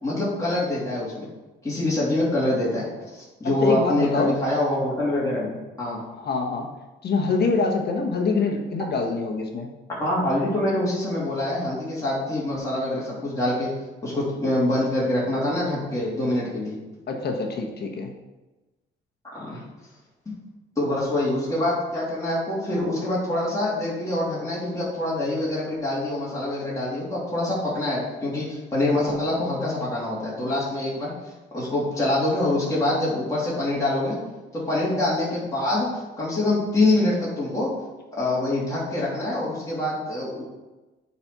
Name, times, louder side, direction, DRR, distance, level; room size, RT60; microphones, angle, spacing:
voice 1, 0.0-1.3 1.6-6.0 9.9-13.7 14.0-16.8 19.2-19.6 20.2-20.3 20.8-31.1 31.5-34.2 34.5-35.9 36.2-37.7 38.2-40.4, left 1 dB, 15° left, -8 dB, 3.2 m, -25 dB
voice 2, 3.6-4.3 6.1-6.7 7.0-9.7 17.1-18.1, left 4 dB, 55° left, 2 dB, 1.3 m, -25 dB
8.8 x 4.3 x 6.1 m, 1.1 s
cardioid pair, 90°, 20 cm